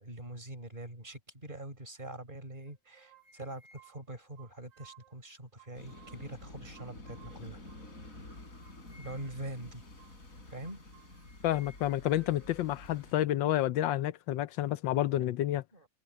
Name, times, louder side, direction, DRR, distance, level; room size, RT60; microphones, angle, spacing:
voice 1, 0.0-7.6 9.0-9.8 10.5-10.8 15.7-15.9, right 1 dB, 25° right, 5.0 m, -44 dB
sound 1, 2.7-5.2 5.6-6.4 6.7-8.1 8.6-9.5 10.0-10.2 10.6-12.5, right 5 dB, 75° right, 5.2 m, -60 dB
sound 2, 5.7-13.1, left 2 dB, 45° left, 5.2 m, -50 dB
voice 2, 11.4-15.6, left 13 dB, 80° left, 1.4 m, -29 dB
omnidirectional pair, 2.0 m